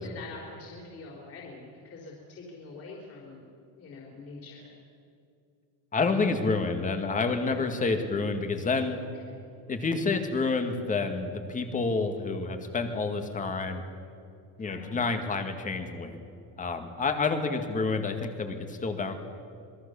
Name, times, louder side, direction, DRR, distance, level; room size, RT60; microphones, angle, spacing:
voice 1, 0.0-3.5 3.7-4.7 7.5-7.8 14.6-15.1, left 3 dB, 35° left, -2 dB, 4.3 m, -44 dB
voice 2, 5.9-9.0 9.7-13.8 14.6-16.2 16.6-19.1, left 4 dB, 20° left, 6 dB, 2.0 m, -29 dB
26.5 x 21.0 x 7.1 m, 2.5 s
cardioid pair, 165°, 41 cm